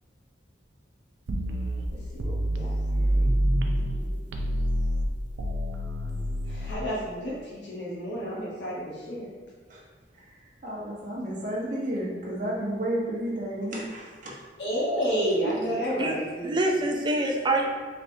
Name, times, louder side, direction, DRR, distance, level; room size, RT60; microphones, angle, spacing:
sound 1, 1.3-4.0 4.3-6.7, equal, 80° right, 0.4 m, -27 dB
voice 1, 2.1-4.2 6.6-8.8 9.1-9.2 14.6-16.5, equal, 80° left, -7 dB, 0.9 m, -31 dB
voice 2, 10.6-14.3 15.2-15.5, right 1 dB, 45° right, -4 dB, 1.0 m, -31 dB
voice 3, 16.0-17.7, right 2 dB, 25° right, 2 dB, 0.4 m, -26 dB
4.1 x 3.3 x 2.7 m, 1.5 s
head